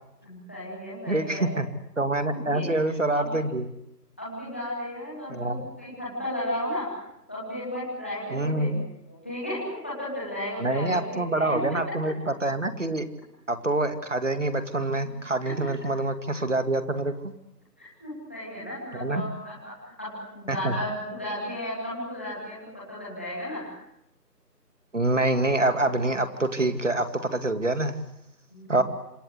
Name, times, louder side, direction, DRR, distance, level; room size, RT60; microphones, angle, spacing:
voice 1, 0.2-1.5 2.3-3.4 4.2-6.9 7.3-8.8 9.1-11.8 15.0-15.1 15.4-15.7 17.8-23.7 28.5-28.8, left 1 dB, 10° left, -8 dB, 2.7 m, -34 dB
voice 2, 1.1-1.7 2.0-3.7 5.3-5.7 8.3-8.8 10.6-13.1 13.5-17.3 18.9-19.2 20.5-20.7 24.9-28.0 28.7-28.8, right 2 dB, 50° right, 10 dB, 2.3 m, -26 dB
27.0 x 25.0 x 8.1 m, 0.83 s
figure-of-eight pair, 180°, 49 cm